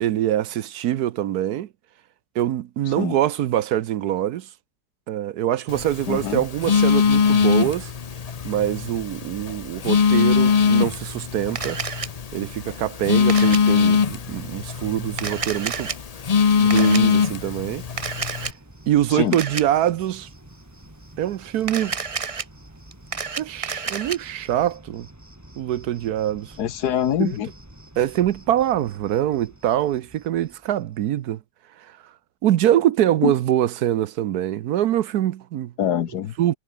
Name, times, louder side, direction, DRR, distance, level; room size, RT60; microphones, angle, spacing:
voice 1, 0.0-1.7 2.3-4.5 5.1-7.9 8.4-11.8 12.3-15.9 16.6-17.8 18.9-20.3 21.2-22.0 23.4-25.1 25.6-26.6 27.2-27.3 28.0-31.4 31.8-32.0 32.4-35.7 36.4-36.6, right 12 dB, 70° right, 1.2 m, -24 dB
Telephone, 5.7-18.5, left 6 dB, 55° left, 0.4 m, -22 dB
voice 2, 6.1-6.4 19.1-19.4 26.6-27.5 33.2-33.3 35.8-36.3, left 10 dB, 70° left, 1.5 m, -24 dB
Camera, 11.6-12.1 13.3-13.6 15.1-16.0 16.7-17.0 18.0-18.5 19.3-19.6 21.6-22.4 22.9-24.2, right 5 dB, 40° right, 0.5 m, -29 dB
Cricket, 15.8-31.3, right 1 dB, 10° right, 2.9 m, -48 dB
omnidirectional pair, 1.8 m